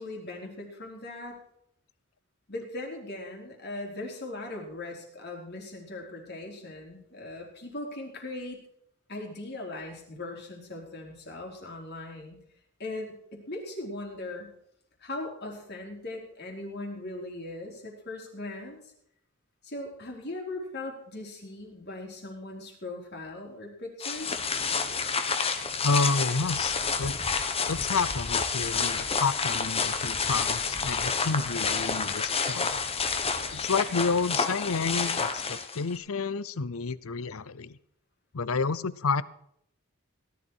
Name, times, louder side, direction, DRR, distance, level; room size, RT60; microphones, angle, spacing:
voice 1, 0.0-1.4 2.5-8.6 9.1-12.4 12.8-14.5 15.0-18.9 19.6-24.4, left 2 dB, 50° left, 0 dB, 4.0 m, -39 dB
sound 1, 24.0-36.0, left 5 dB, 25° left, 1.2 m, -29 dB
voice 2, 25.8-27.2 27.7-32.9 33.5-37.8 38.3-39.2, left 4 dB, 75° left, 18 dB, 0.7 m, -30 dB
18.0 x 11.5 x 4.7 m, 0.71 s
head